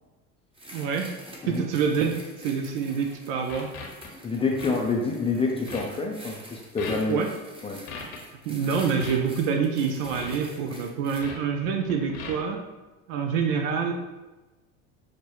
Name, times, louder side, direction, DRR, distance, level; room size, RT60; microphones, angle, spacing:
sound 1, 0.5-11.2, right 1 dB, 15° right, 0.9 m, -47 dB
voice 1, 0.7-1.1 1.5-3.7 7.1-7.3 8.5-12.6 13.1-13.9, right 6 dB, 70° right, 4 dB, 0.6 m, -26 dB
sound 2, 2.9-3.1 3.5-4.1 4.6-4.7 5.1-5.3 5.7-5.8 6.5-6.6 6.8-7.1 7.9-8.2 8.8-9.2 10.0-10.4 11.2-11.4 11.7-12.4, left 4 dB, 75° left, 1.1 m, -39 dB
voice 2, 4.2-7.2 7.6-7.8, left 4 dB, 15° left, -1 dB, 0.4 m, -27 dB
6.4 x 2.2 x 3.0 m, 1.2 s
hypercardioid pair, 85°, 41 cm